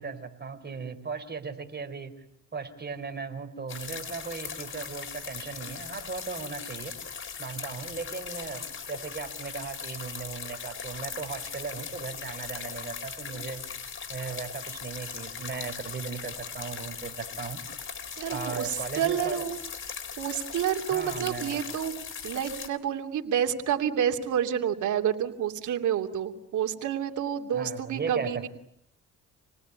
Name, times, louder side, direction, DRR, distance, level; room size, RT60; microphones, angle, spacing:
voice 1, 0.0-2.2 2.5-6.9 7.4-13.6 14.1-17.6 18.3-19.4 20.9-21.6 27.5-28.5, right 5 dB, 35° right, 6 dB, 4.5 m, -37 dB
sound 1, 3.7-22.7, left 6 dB, 40° left, 3.8 m, -39 dB
voice 2, 18.2-19.6 20.2-28.5, right 9 dB, 75° right, 4 dB, 3.0 m, -29 dB
28.5 x 19.5 x 9.8 m, 0.72 s
cardioid pair, 90°, 30 cm